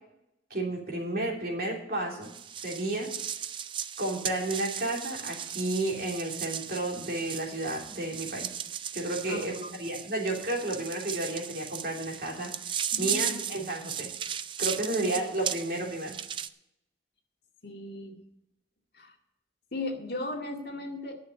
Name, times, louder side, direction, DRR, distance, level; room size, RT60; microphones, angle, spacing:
voice 1, 0.5-2.3 2.5-3.1 4.0-8.5 8.9-14.1 14.6-16.2, right 2 dB, 55° right, -1 dB, 3.1 m, -32 dB
sound 1, 2.2-16.5, right 9 dB, 30° right, 0.3 m, -36 dB
voice 2, 9.3-9.8 12.9-13.7 14.9-15.3 17.6-18.2 18.9-19.1 19.7-21.1, left 2 dB, 60° left, 0 dB, 2.1 m, -37 dB
10.5 x 6.5 x 8.3 m, 0.82 s
head